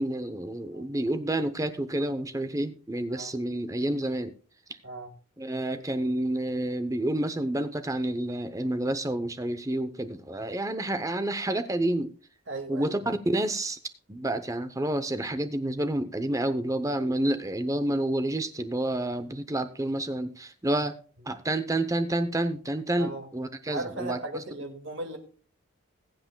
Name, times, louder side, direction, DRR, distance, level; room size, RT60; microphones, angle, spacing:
voice 1, 0.0-4.3 5.4-12.1 12.7-13.8 14.1-20.9 21.3-24.4, right 1 dB, 15° right, 0.7 m, -29 dB
voice 2, 12.5-13.1 23.0-23.3 23.7-25.2, right 2 dB, 55° right, 1.9 m, -37 dB
21.0 x 7.8 x 2.2 m
head